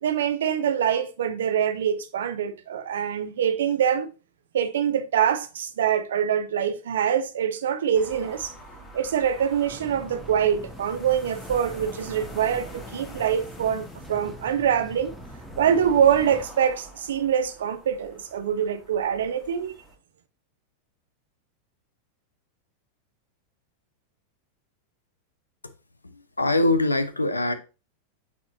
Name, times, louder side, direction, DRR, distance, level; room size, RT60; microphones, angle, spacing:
voice 1, 0.0-4.1 4.5-8.5 8.9-15.1 15.6-19.7, right 8 dB, 60° right, 0.8 m, -24 dB
sound 1, 7.9-19.9, equal, 20° left, 2.0 m, -45 dB
sound 2, 9.7-16.5, right 1 dB, ahead, 0.9 m, -43 dB
voice 2, 26.1-27.5, left 2 dB, 80° left, 0.6 m, -23 dB
8.3 x 4.2 x 2.8 m
figure-of-eight pair, 90°, 0 cm